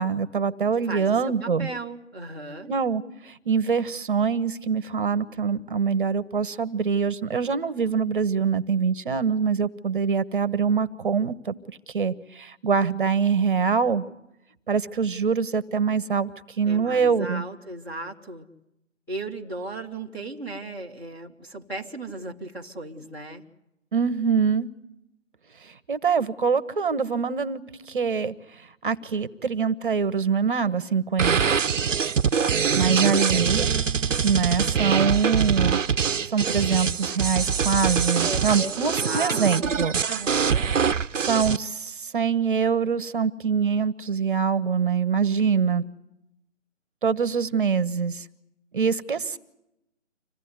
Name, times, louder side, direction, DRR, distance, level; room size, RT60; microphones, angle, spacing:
voice 1, 0.0-1.7 2.7-11.5 11.9-14.0 14.7-16.3 16.6-17.4 23.9-24.7 25.6-27.6 27.9-31.4 32.8-33.7 34.2-35.8 36.3-40.0 41.2-45.8 47.0-48.3 48.7-49.4, right 6 dB, 40° right, 16 dB, 1.2 m, -24 dB
voice 2, 0.9-2.7 16.7-18.5 19.1-23.4 38.1-39.7 40.0-40.7, right 2 dB, 5° left, -3 dB, 1.3 m, -36 dB
sound 1, 31.2-41.6, right 6 dB, 75° right, 0.8 m, -24 dB
26.5 x 16.5 x 9.6 m, 0.85 s
figure-of-eight pair, 155°, 38 cm